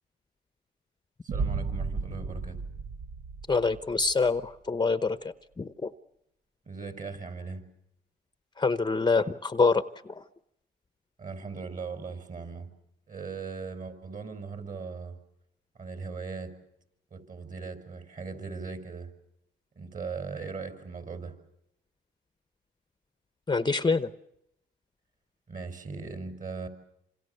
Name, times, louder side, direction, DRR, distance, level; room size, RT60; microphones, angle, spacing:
voice 1, 1.2-2.6 6.7-7.6 11.2-12.7 13.1-15.2 15.8-16.5 17.1-19.1 19.8-21.3 25.5-26.7, right 4 dB, 40° right, 8 dB, 5.4 m, -39 dB
sound 1, 1.3-4.3, right 4 dB, 65° right, 1.7 m, -34 dB
voice 2, 3.5-5.9 8.6-10.2 23.5-24.1, left 4 dB, 20° left, 13 dB, 1.0 m, -26 dB
27.0 x 27.0 x 6.8 m, 0.79 s
cardioid pair, 90°, 20 cm